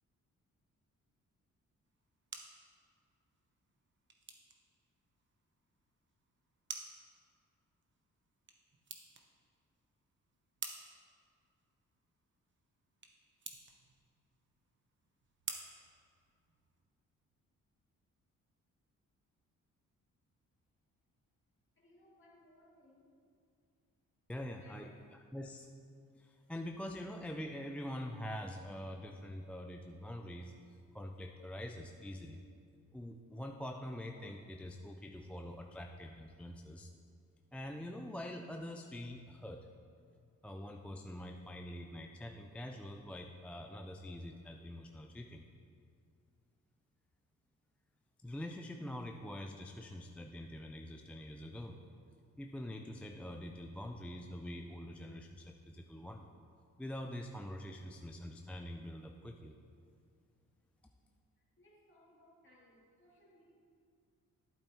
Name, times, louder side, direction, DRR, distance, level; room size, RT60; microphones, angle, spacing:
sound 1, 1.8-16.8, right 4 dB, 35° right, 1.0 m, -52 dB
voice 1, 21.8-23.2 24.5-25.0 61.4-63.5, left 1 dB, 40° left, -4 dB, 2.5 m, -64 dB
voice 2, 24.3-24.9 25.3-25.7 26.2-30.5 30.9-32.4 32.9-36.9 37.5-39.7 40.4-45.4 48.2-51.8 52.4-56.3 56.8-59.5, left 1 dB, 5° left, 3 dB, 0.4 m, -45 dB
11.0 x 8.5 x 3.0 m, 2.3 s
cardioid pair, 80°, 32 cm